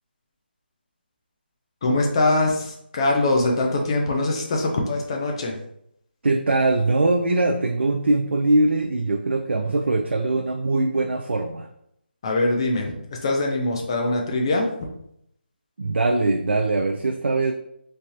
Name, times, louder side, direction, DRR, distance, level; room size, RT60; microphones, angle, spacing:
voice 1, 1.8-5.6 12.2-14.7, left 2 dB, 30° left, 0 dB, 0.6 m, -23 dB
voice 2, 6.2-11.7 15.8-17.5, right 2 dB, 85° right, 3 dB, 0.4 m, -22 dB
3.3 x 3.2 x 2.8 m, 0.75 s
figure-of-eight pair, 165°, 6 cm